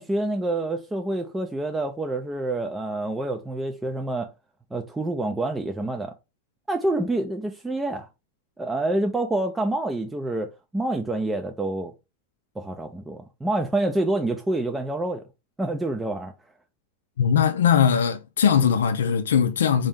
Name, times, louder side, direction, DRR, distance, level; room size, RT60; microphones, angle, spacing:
voice 1, 0.0-4.3 4.7-6.1 6.7-8.1 8.6-11.9 12.6-15.2 15.6-16.3, right 2 dB, 10° right, 0.4 m, -27 dB
voice 2, 17.2-19.9, left 7 dB, 85° left, 0.4 m, -20 dB
3.5 x 2.7 x 3.4 m
hypercardioid pair, 110°, 0 cm